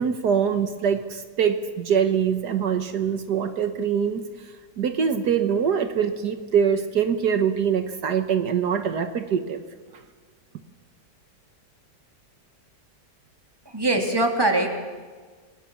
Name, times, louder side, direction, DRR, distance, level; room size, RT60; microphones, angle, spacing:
voice 1, 0.0-9.6, right 7 dB, 75° right, 8 dB, 1.8 m, -24 dB
voice 2, 13.6-14.8, right 2 dB, 15° right, 2 dB, 3.2 m, -22 dB
29.5 x 21.5 x 7.2 m, 1.5 s
omnidirectional pair, 1.8 m